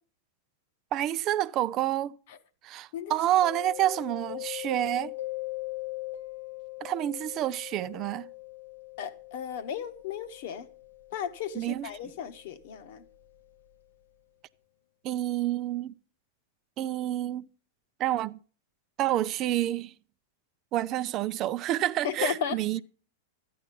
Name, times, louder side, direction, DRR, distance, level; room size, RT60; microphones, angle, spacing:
voice 1, 0.9-2.1 2.6-5.1 6.8-8.3 11.6-12.1 15.0-15.9 16.8-17.5 18.0-18.4 19.0-19.9 20.7-22.8, right 13 dB, 40° right, 0.5 m, -28 dB
Mallet percussion, 3.4-13.0, left 19 dB, 70° left, 0.8 m, -41 dB
voice 2, 9.0-10.7 11.1-13.0 22.0-22.8, left 8 dB, 55° left, 1.2 m, -35 dB
13.0 x 9.5 x 5.3 m
figure-of-eight pair, 95°, 0 cm